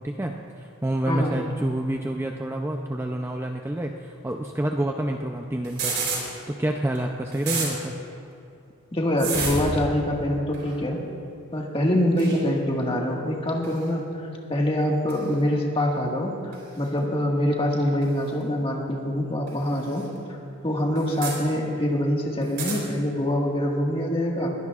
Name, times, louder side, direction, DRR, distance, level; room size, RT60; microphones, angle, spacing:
voice 1, 0.0-5.9 6.5-8.0, right 1 dB, 10° right, 2 dB, 0.4 m, -28 dB
sound 1, 5.6-6.2 6.9-7.0 7.3-7.7 9.2-9.7 10.5-10.7 12.2-12.4 13.6-13.8 15.1-15.2 16.5-16.6 18.0-18.1 19.5-19.6 19.9-20.0 20.9-21.3 22.4-22.8, right 4 dB, 50° right, 3.8 m, -29 dB
voice 2, 8.9-11.0 11.5-14.0 14.5-20.1 20.6-24.5, left 1 dB, 25° left, -1 dB, 1.7 m, -24 dB
21.5 x 17.0 x 2.4 m, 2.5 s
head